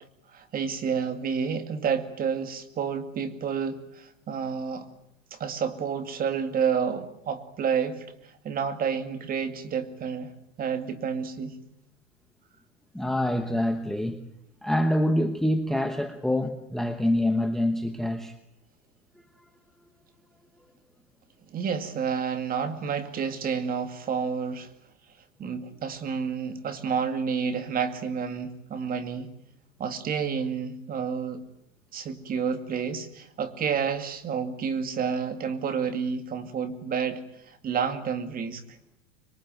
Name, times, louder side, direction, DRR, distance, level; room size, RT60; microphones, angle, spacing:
voice 1, 0.3-4.9 5.3-10.3 10.6-11.6 21.5-24.7 25.4-29.3 29.8-31.4 31.9-38.6, right 6 dB, 20° right, 2.3 m, -30 dB
voice 2, 12.9-14.2 14.6-18.4, left 1 dB, ahead, 1.0 m, -26 dB
25.5 x 22.5 x 9.1 m
supercardioid pair, 150°, 38 cm